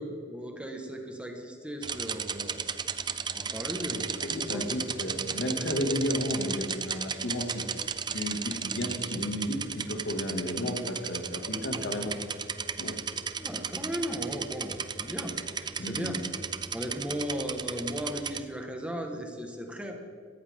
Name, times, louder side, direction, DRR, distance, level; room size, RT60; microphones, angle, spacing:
voice 1, 0.0-2.7 3.3-4.7 13.4-16.2 16.7-19.9, equal, 5° right, 2 dB, 1.5 m, -36 dB
sound 1, 1.8-18.4, right 6 dB, 25° right, 0.5 m, -35 dB
voice 2, 4.2-7.6 8.1-12.1 12.8-13.0 15.8-16.2, equal, 75° left, 3 dB, 2.2 m, -32 dB
18.0 x 14.0 x 3.7 m, 2.2 s
head